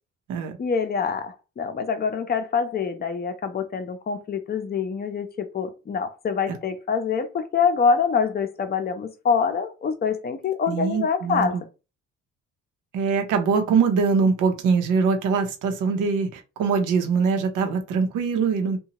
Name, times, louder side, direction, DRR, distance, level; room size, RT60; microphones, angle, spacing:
voice 1, 0.6-11.6, left 5 dB, 30° left, 0.6 m, -25 dB
voice 2, 10.7-11.6 12.9-18.8, right 5 dB, 90° right, 0.8 m, -23 dB
2.7 x 2.3 x 2.9 m
cardioid pair, 90°, 30 cm